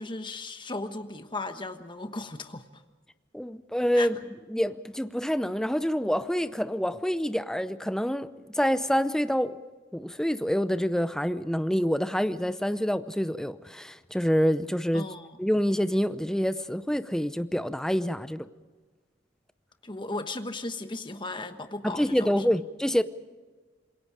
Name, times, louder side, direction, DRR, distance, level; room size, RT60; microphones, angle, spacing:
voice 1, 0.0-2.8 3.9-4.1 14.9-15.3 19.8-22.6, left 2 dB, 25° left, 1.2 m, -36 dB
voice 2, 3.3-4.2 4.5-9.6 9.9-15.1 15.4-18.5 21.8-23.0, equal, 5° left, 0.6 m, -27 dB
27.0 x 22.0 x 4.9 m
head